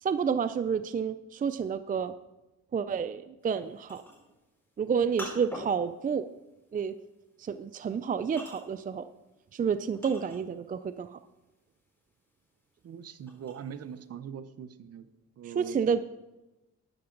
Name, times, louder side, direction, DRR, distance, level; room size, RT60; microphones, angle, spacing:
voice 1, 0.0-2.1 2.7-4.0 4.8-6.3 6.7-6.9 7.4-9.1 9.5-11.2 15.6-16.0, right 6 dB, 30° right, 12 dB, 0.4 m, -29 dB
sound 1, 3.5-10.8 11.1-14.0, left 1 dB, 5° left, 4.7 m, -46 dB
voice 2, 12.8-16.0, right 8 dB, 55° right, 12 dB, 0.8 m, -43 dB
13.0 x 9.5 x 3.9 m, 1.0 s
cardioid pair, 90°, 30 cm